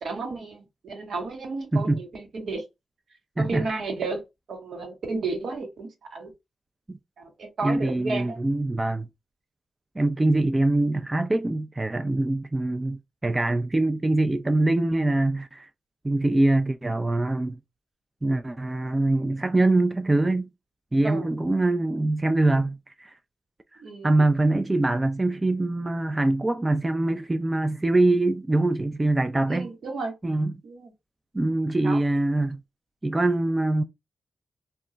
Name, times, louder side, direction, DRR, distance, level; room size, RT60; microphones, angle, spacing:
voice 1, 0.0-2.6 3.4-4.2 4.5-6.3 7.2-8.4 21.0-21.3 23.8-24.1 29.5-30.1 30.6-30.9 31.8-32.0, right 3 dB, 75° right, 1.0 m, -32 dB
voice 2, 3.4-3.7 6.9-7.0 7.6-9.1 10.0-15.7 16.0-17.6 18.2-20.5 20.9-23.2 24.0-29.7 30.2-30.5 31.3-32.6 33.0-33.8, right 2 dB, 25° right, 0.4 m, -23 dB
2.3 x 2.2 x 3.8 m
supercardioid pair, 45°, 0 cm